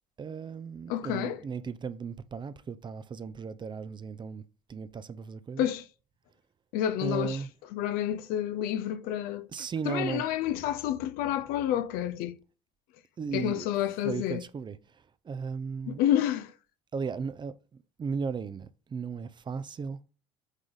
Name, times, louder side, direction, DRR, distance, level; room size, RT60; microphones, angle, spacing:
voice 1, 0.2-4.4 4.7-5.7 7.0-7.5 9.5-10.2 13.2-13.7 14.0-16.0 16.9-17.6 18.0-20.0, right 5 dB, 30° right, 0.6 m, -36 dB
voice 2, 0.9-1.4 5.6-5.8 6.7-7.4 7.7-9.5 9.9-12.4 13.3-14.4 15.9-16.5, left 11 dB, 65° left, 0.7 m, -29 dB
8.1 x 3.9 x 4.0 m
hypercardioid pair, 75°, 16 cm